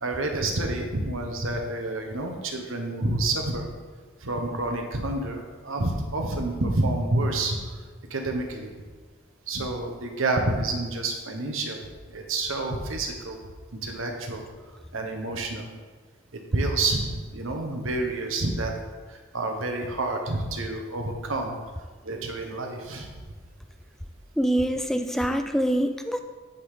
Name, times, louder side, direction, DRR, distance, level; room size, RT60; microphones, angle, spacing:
voice 1, 0.0-3.7 4.2-7.8 8.1-8.7 9.5-11.8 12.1-13.4 13.7-14.4 14.9-15.7 16.3-18.7 19.1-21.6 22.0-23.1, right 2 dB, 80° right, 3 dB, 1.1 m, -28 dB
voice 2, 24.4-26.2, right 1 dB, ahead, 6 dB, 0.3 m, -25 dB
9.2 x 3.8 x 5.0 m, 1.4 s
head